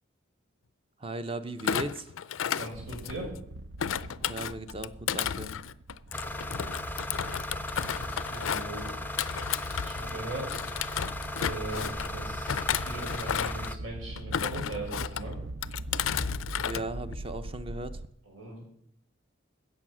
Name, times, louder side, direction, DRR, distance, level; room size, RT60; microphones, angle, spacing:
voice 1, 1.0-2.1 4.3-5.5 16.6-18.0, right 2 dB, 25° right, 10 dB, 0.7 m, -37 dB
Thump thud, 1.6-3.4 3.8-10.2 10.5-12.1 12.5-13.7 14.2-15.2 15.6-16.8 17.1-17.5, left 8 dB, 85° left, 0.4 m, -33 dB
voice 2, 2.4-3.3 8.0-8.9 9.8-10.6 11.4-15.4 18.3-18.6, right 1 dB, 85° right, -1 dB, 6.1 m, -39 dB
sound 1, 2.7-18.1, right 2 dB, 65° right, 0.6 m, -43 dB
sound 2, 6.1-13.8, left 1 dB, 10° left, 0.5 m, -37 dB
13.5 x 8.5 x 6.2 m, 0.69 s
head